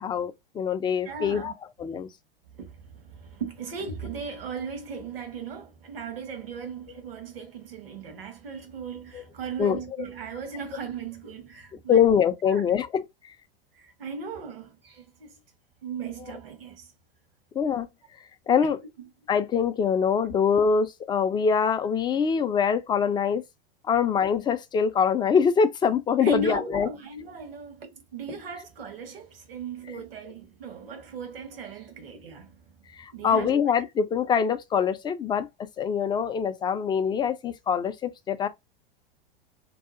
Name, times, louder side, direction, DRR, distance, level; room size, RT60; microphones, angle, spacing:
voice 1, 0.0-1.5 1.8-2.1 9.1-9.2 9.6-9.8 11.9-13.1 17.6-17.9 18.5-18.8 19.3-23.4 23.9-26.9 32.9-35.5 35.8-38.5, left 7 dB, 15° left, 0.3 m, -24 dB
voice 2, 1.0-1.5 2.5-12.0 12.4-12.8 13.7-15.3 15.8-16.9 18.6-18.7 26.2-32.6 33.1-33.5, right 5 dB, 75° right, 1.1 m, -37 dB
2.7 x 2.3 x 2.3 m
hypercardioid pair, 90°, 29 cm